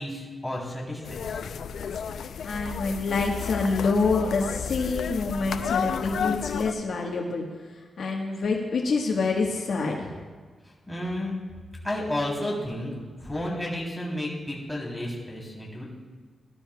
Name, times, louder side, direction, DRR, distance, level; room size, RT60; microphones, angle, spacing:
voice 1, 0.0-1.5 10.9-11.4 11.8-12.9 13.2-15.8, left 1 dB, 10° left, -4 dB, 3.3 m, -32 dB
sound 1, 1.0-6.7, left 7 dB, 90° left, 0.4 m, -32 dB
voice 2, 2.4-10.1, left 4 dB, 70° left, 0 dB, 1.3 m, -27 dB
18.5 x 12.0 x 2.3 m, 1.5 s
wide cardioid pair, 135°, 0 cm